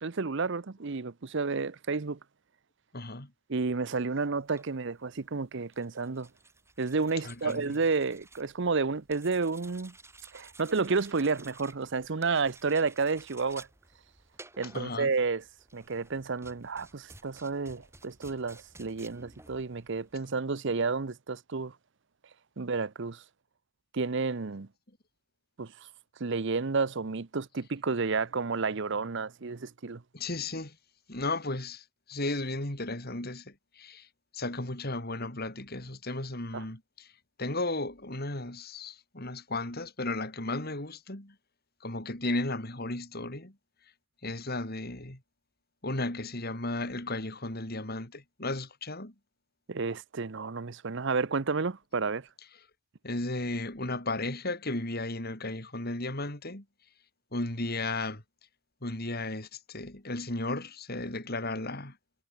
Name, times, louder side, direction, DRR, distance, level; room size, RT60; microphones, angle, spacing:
voice 1, 0.0-2.2 3.5-6.3 6.8-9.9 10.3-13.7 14.6-15.4 15.7-21.7 22.6-23.2 23.9-24.7 25.6-25.7 26.2-30.0 36.5-36.6 49.7-52.3, right 4 dB, 60° right, 0.8 m, -31 dB
voice 2, 2.9-3.3 7.2-7.7 14.7-15.1 30.1-30.8 31.1-34.1 34.3-37.1 37.4-41.3 41.8-43.5 44.2-45.2 45.8-49.1 53.0-56.6 57.3-58.2 58.8-61.9, left 2 dB, 45° left, 3.9 m, -34 dB
sound 1, 4.4-20.4, right 2 dB, 10° right, 5.6 m, -55 dB
head